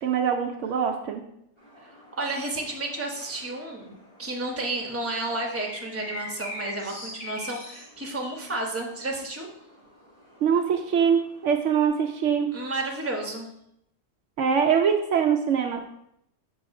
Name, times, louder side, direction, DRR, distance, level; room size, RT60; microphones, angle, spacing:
voice 1, 0.0-1.2 10.4-12.6 14.4-15.9, right 7 dB, 70° right, 4 dB, 0.9 m, -23 dB
sound 1, 1.6-11.9, left 1 dB, 20° left, 1.8 m, -44 dB
voice 2, 2.2-9.5 12.5-13.5, right 2 dB, 10° right, 0 dB, 0.9 m, -31 dB
6.2 x 3.1 x 5.3 m, 0.77 s
omnidirectional pair, 1.4 m